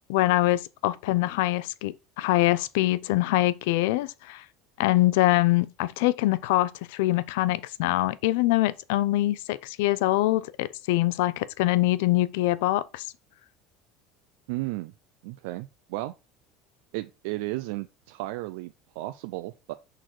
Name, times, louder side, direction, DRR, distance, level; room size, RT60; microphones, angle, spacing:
voice 1, 0.1-4.4 4.8-13.1, left 17 dB, 85° left, 0.5 m, -24 dB
voice 2, 14.5-14.9 15.2-16.1 16.9-19.7, right 19 dB, 80° right, 0.4 m, -34 dB
6.4 x 3.9 x 4.6 m
cardioid pair, 160°, 0 cm